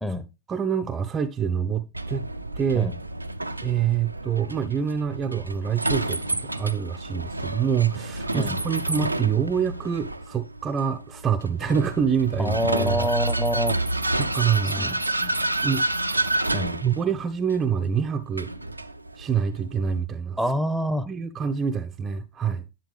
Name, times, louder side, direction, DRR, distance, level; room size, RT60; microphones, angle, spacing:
voice 1, 0.5-2.3 2.6-2.9 3.6-13.1 14.2-15.0 15.6-15.9 16.8-18.5 19.2-20.4 21.1-22.6, right 7 dB, 25° right, 0.6 m, -26 dB
Vehicle, 1.9-20.0, right 2 dB, 85° right, 0.5 m, -29 dB
voice 2, 12.4-13.8 14.8-15.4 16.5-16.8 20.4-21.1, equal, 5° left, 1.0 m, -27 dB
10.5 x 7.4 x 3.4 m
figure-of-eight pair, 90°, 0 cm